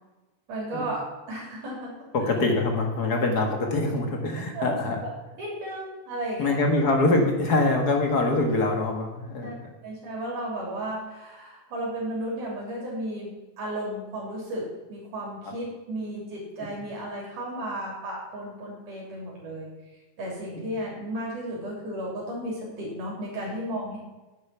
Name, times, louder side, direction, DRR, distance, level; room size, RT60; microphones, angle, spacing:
voice 1, 0.5-1.0 1.3-2.3 4.5-5.1 5.3-6.6 9.4-13.3 13.6-19.7 20.2-24.0, right 1 dB, 80° right, -4 dB, 4.6 m, -34 dB
voice 2, 2.1-5.0 6.4-9.5, left 2 dB, 40° left, 3 dB, 1.7 m, -24 dB
10.5 x 8.7 x 5.8 m, 1.1 s
omnidirectional pair, 3.6 m